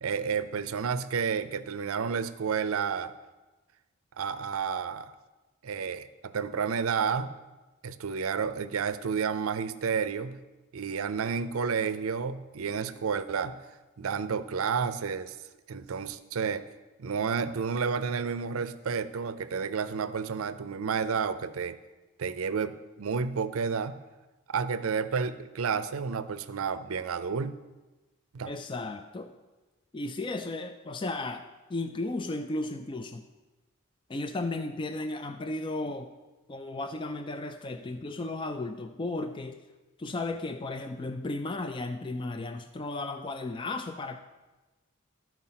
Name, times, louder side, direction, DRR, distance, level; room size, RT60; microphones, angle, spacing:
voice 1, 0.0-3.1 4.2-5.1 5.6-7.3 7.8-10.4 10.7-13.6 14.0-15.4 15.7-16.6 17.0-21.8 22.2-24.0 24.5-27.5 28.3-28.5, right 6 dB, 75° right, 13 dB, 0.5 m, -31 dB
voice 2, 28.5-29.4 29.9-33.3 34.1-36.1 36.5-39.6 40.0-44.2, left 2 dB, 20° left, 8 dB, 0.3 m, -34 dB
12.0 x 4.6 x 5.7 m, 1.2 s
head